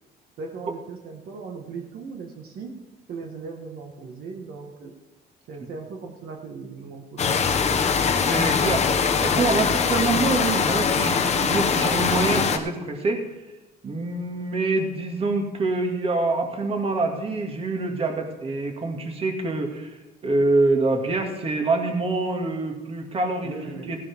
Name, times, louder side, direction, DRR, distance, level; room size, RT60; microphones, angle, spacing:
voice 1, 0.4-2.8 3.1-4.9 5.5-7.5 23.4-24.0, right 4 dB, 65° right, 2 dB, 1.7 m, -38 dB
sound 1, 7.2-12.6, left 6 dB, 40° left, 1.2 m, -22 dB
voice 2, 8.3-8.9 9.2-13.2 13.8-19.9 20.2-23.5 23.9-24.0, right 3 dB, 35° right, 3 dB, 2.2 m, -25 dB
16.5 x 11.0 x 3.7 m, 1.1 s
cardioid pair, 110°, 17 cm